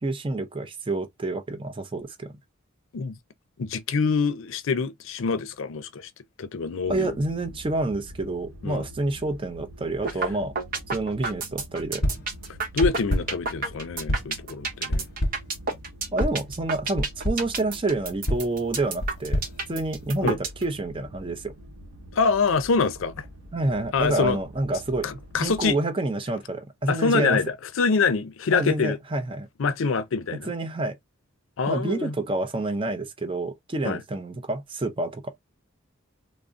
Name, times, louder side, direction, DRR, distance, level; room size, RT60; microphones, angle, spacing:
voice 1, 0.0-2.3 6.9-10.5 10.9-12.0 16.1-19.4 19.7-21.5 23.5-25.1 25.4-27.4 28.5-29.5 30.5-31.0 31.7-35.2, right 2 dB, 25° right, 0.5 m, -28 dB
voice 2, 3.6-6.1 6.4-7.1 8.6-8.8 12.7-15.1 20.2-20.4 22.1-23.2 23.9-24.4 25.0-25.8 26.9-29.0 29.6-30.5 31.6-32.1 33.8-34.0, left 5 dB, 75° left, 0.5 m, -25 dB
sound 1, 6.8-25.7, equal, 85° right, 0.9 m, -45 dB
sound 2, 10.0-10.3 10.6-20.6, right 4 dB, 45° right, 0.8 m, -29 dB
sound 3, 12.0-12.4 12.8-13.5 14.1-14.4 14.9-15.6 16.2-16.5 17.0-17.5 18.3-20.3, equal, 50° left, 0.8 m, -28 dB
3.6 x 2.0 x 2.4 m
head